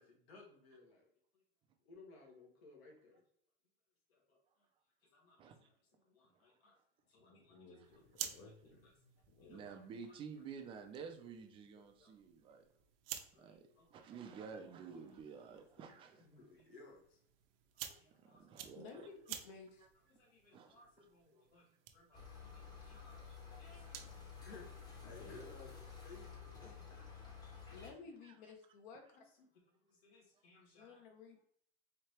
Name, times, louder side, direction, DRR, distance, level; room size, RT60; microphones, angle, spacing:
voice 1, 0.0-1.4 1.8-3.2 4.1-4.7 5.0-6.8 7.1-7.8 8.3-8.5 8.8-8.9 9.4-10.2 11.3-11.4 11.7-12.2 13.3-14.5 15.3-15.9 16.2-17.2 17.7-18.7 19.1-19.2 20.1-28.4 29.1-31.1, left 3 dB, 80° left, -1 dB, 1.7 m, -62 dB
voice 2, 7.1-9.8 25.0-25.7, left 2 dB, 30° left, 2 dB, 1.1 m, -58 dB
sound 1, 7.8-24.3, right 10 dB, 65° right, 0.6 m, -53 dB
voice 3, 9.5-12.6 13.4-13.6 13.9-16.3 18.2-19.1 20.5-20.8 28.2-28.3, right 6 dB, 20° right, 5 dB, 0.4 m, -51 dB
voice 4, 18.7-19.9 27.7-29.2 30.8-31.4, left 5 dB, 55° left, 4 dB, 0.8 m, -54 dB
sound 2, 22.1-27.9, left 6 dB, 15° left, 0.8 m, -52 dB
4.4 x 2.8 x 3.1 m, 0.65 s
supercardioid pair, 145°, 30 cm